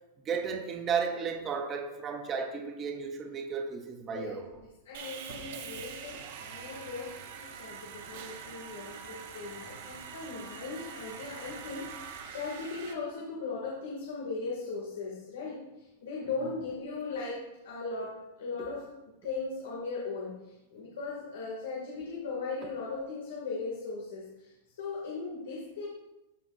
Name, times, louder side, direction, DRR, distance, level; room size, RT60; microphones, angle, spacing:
voice 1, 0.2-4.5, right 6 dB, 15° right, 3 dB, 0.7 m, -33 dB
voice 2, 4.1-4.4 4.8-7.1 7.4-25.9, left 4 dB, 80° left, -4 dB, 2.2 m, -38 dB
Sawing, 4.9-12.9, right 7 dB, 45° right, 0.9 m, -44 dB
14.0 x 5.7 x 2.6 m, 0.97 s
supercardioid pair, 180°, 0 cm